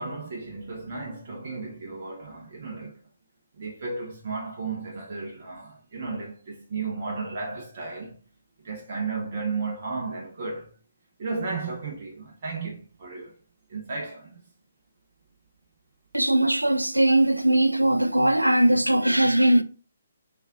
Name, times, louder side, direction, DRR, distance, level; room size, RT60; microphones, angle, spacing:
voice 1, 0.0-3.0 3.6-8.2 8.6-10.7 11.2-13.4 13.7-14.4, right 4 dB, 40° right, 0.8 m, -34 dB
voice 2, 16.1-19.6, right 1 dB, 85° right, 0.4 m, -20 dB
5.3 x 2.5 x 3.5 m
figure-of-eight pair, 135°, 0 cm